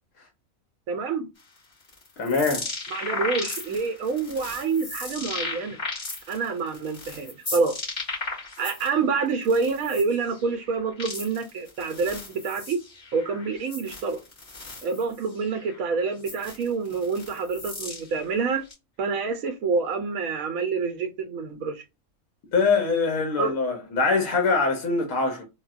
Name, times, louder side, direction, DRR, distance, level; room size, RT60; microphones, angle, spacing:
voice 1, 0.9-1.3 2.9-5.8 6.3-7.8 8.6-12.8 13.1-14.2 14.8-18.6 19.0-21.8 23.4-23.6, right 4 dB, 75° right, 1.0 m, -27 dB
sound 1, 1.4-8.9 9.3-18.7, left 3 dB, 35° left, 2.0 m, -36 dB
voice 2, 2.2-2.7 22.5-25.4, left 4 dB, 70° left, 1.2 m, -23 dB
3.9 x 2.2 x 2.4 m
omnidirectional pair, 1.5 m